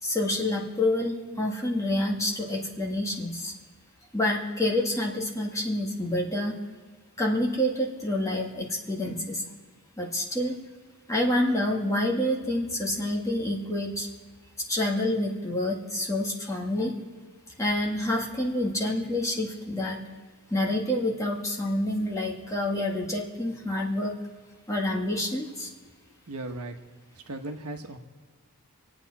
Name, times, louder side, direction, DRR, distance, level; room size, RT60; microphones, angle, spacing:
voice 1, 0.0-3.5 4.1-6.6 7.2-9.4 10.0-10.6 11.1-14.1 14.7-16.9 17.6-20.0 20.5-24.1 24.7-25.7, left 1 dB, 15° left, -2 dB, 2.0 m, -28 dB
voice 2, 26.3-26.7 27.3-28.0, right 2 dB, 85° right, 5 dB, 1.3 m, -36 dB
26.5 x 8.9 x 4.2 m, 1.5 s
head